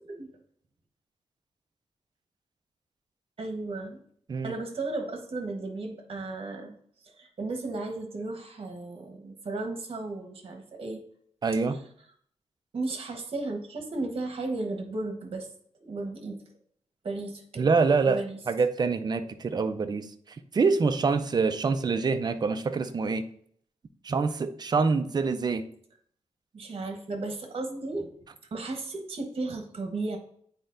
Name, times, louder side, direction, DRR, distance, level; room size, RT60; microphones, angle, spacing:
voice 1, 3.4-4.0 4.4-6.8 7.0-11.0 12.7-15.5 15.8-16.4 17.0-17.7 18.1-18.4 26.5-28.1 28.5-30.2, right 2 dB, 55° right, 4 dB, 1.2 m, -34 dB
voice 2, 11.4-11.8 17.6-18.2 18.5-20.1 20.5-23.2 24.0-25.6, right 4 dB, 35° right, 9 dB, 0.5 m, -25 dB
9.1 x 4.4 x 2.6 m, 0.62 s
wide cardioid pair, 125°, 12 cm